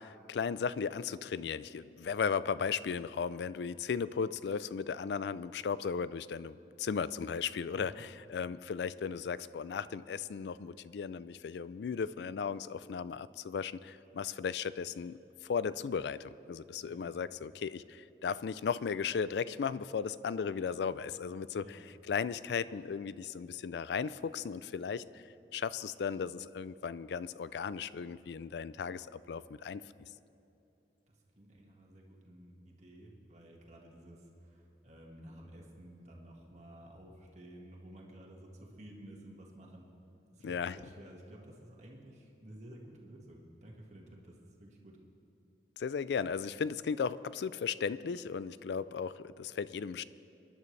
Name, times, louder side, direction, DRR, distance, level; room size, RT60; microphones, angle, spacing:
voice 1, 0.0-25.2 25.5-29.8 40.4-40.8 45.8-50.0, left 6 dB, 75° left, 17 dB, 0.4 m, -36 dB
voice 2, 7.7-8.1 16.8-17.2 21.6-21.9 31.1-39.9 40.3-45.0, right 1 dB, 40° right, -1 dB, 1.7 m, -53 dB
23.5 x 11.0 x 3.3 m, 2.9 s
head